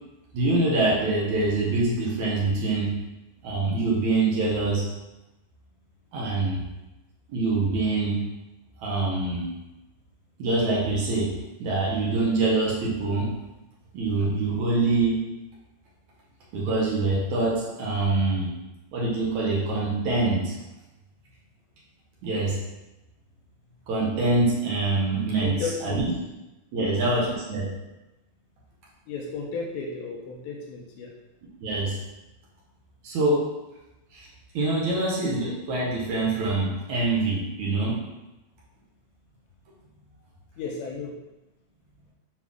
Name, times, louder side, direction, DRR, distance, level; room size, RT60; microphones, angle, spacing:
voice 1, 0.3-2.9 3.4-4.8 6.1-6.6 7.3-8.2 8.8-9.5 10.4-11.3 11.6-13.3 13.9-15.2 16.5-18.5 18.9-20.5 22.2-22.6 23.9-26.1 26.7-27.7 31.6-32.0 33.0-33.5 34.1-34.3 34.5-38.0, right 2 dB, 70° right, -5 dB, 1.8 m, -25 dB
voice 2, 25.4-26.0 26.7-27.0 29.1-31.1 40.6-41.2, left 4 dB, 85° left, -2 dB, 3.1 m, -34 dB
8.0 x 4.5 x 3.6 m, 1.0 s
omnidirectional pair, 5.0 m